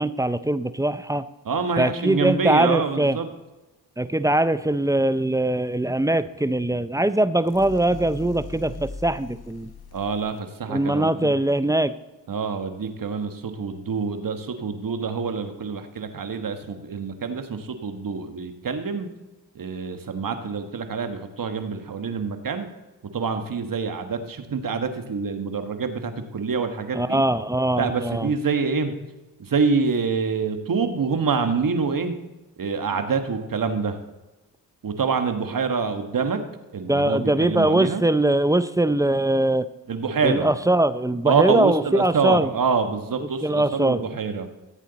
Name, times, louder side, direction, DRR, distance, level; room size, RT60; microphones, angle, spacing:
voice 1, 0.0-1.3 1.8-3.2 4.0-9.7 10.7-11.9 26.9-28.3 36.9-39.7 40.2-42.5 43.4-44.0, right 1 dB, 10° right, 14 dB, 0.4 m, -22 dB
voice 2, 1.4-3.3 9.9-11.3 12.3-19.1 19.5-22.7 23.1-27.2 27.8-28.9 29.4-32.1 32.6-34.0 34.8-36.4 36.7-38.0 39.9-40.5 41.2-44.5, right 5 dB, 50° right, 8 dB, 1.4 m, -26 dB
sound 1, 7.4-10.4, left 4 dB, 60° left, 1.3 m, -40 dB
14.5 x 8.3 x 4.0 m, 1.1 s
cardioid pair, 55°, 43 cm